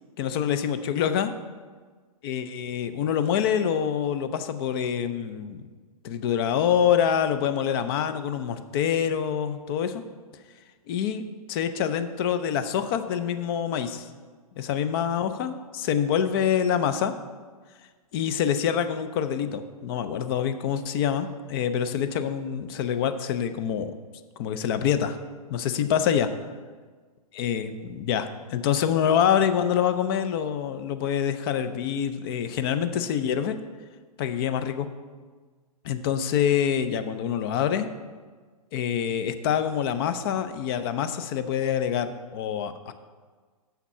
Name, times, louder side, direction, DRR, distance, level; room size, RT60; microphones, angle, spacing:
voice 1, 0.2-1.3 2.2-5.7 6.0-10.0 10.9-14.1 14.6-17.1 18.1-23.9 24.4-25.2 25.5-26.3 27.4-33.6 34.2-34.9 35.8-37.9 38.7-42.9, left 8 dB, 40° left, 10 dB, 0.5 m, -26 dB
7.1 x 5.8 x 5.5 m, 1.5 s
hypercardioid pair, 130°, 19 cm